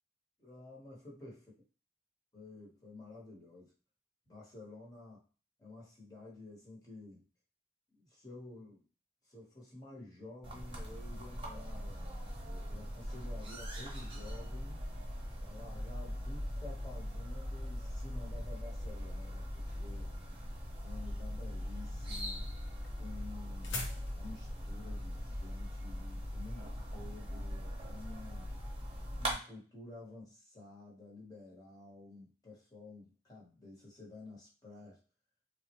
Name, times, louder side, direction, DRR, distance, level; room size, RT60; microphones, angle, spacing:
voice 1, 0.4-1.4 2.3-3.7 4.3-5.2 5.6-7.2 7.9-8.8 9.3-14.9 15.4-20.1 20.8-22.5 23.0-28.5 29.2-35.0, left 2 dB, 20° left, -5 dB, 1.1 m, -51 dB
sound 1, 10.4-29.3, equal, 30° right, 0.8 m, -41 dB
sound 2, 22.8-27.2, left 2 dB, 85° left, 0.8 m, -47 dB
3.5 x 2.1 x 3.0 m, 0.37 s
head